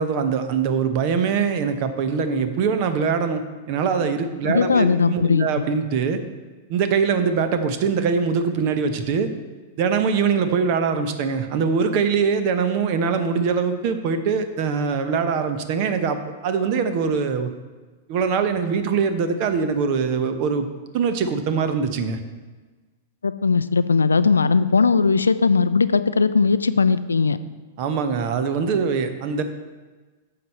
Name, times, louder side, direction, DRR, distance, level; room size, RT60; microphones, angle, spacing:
voice 1, 0.0-6.2 6.7-9.3 9.8-17.5 18.1-20.7 20.9-22.2 27.8-29.4, right 5 dB, 45° right, 9 dB, 0.9 m, -23 dB
voice 2, 4.5-5.5 23.2-27.4, left 4 dB, 75° left, 13 dB, 0.4 m, -18 dB
9.7 x 6.9 x 4.3 m, 1.3 s
figure-of-eight pair, 100°, 0 cm